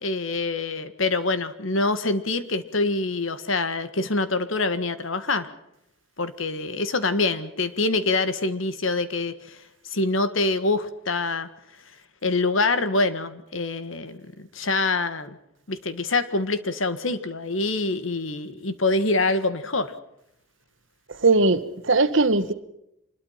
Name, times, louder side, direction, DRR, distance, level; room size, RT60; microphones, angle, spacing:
voice 1, 0.0-5.5 6.2-9.6 9.9-11.5 12.2-15.4 15.7-19.9, left 3 dB, 75° left, 12 dB, 1.7 m, -25 dB
voice 2, 21.2-22.5, right 3 dB, 65° right, 12 dB, 1.4 m, -19 dB
26.0 x 21.0 x 5.8 m, 0.82 s
head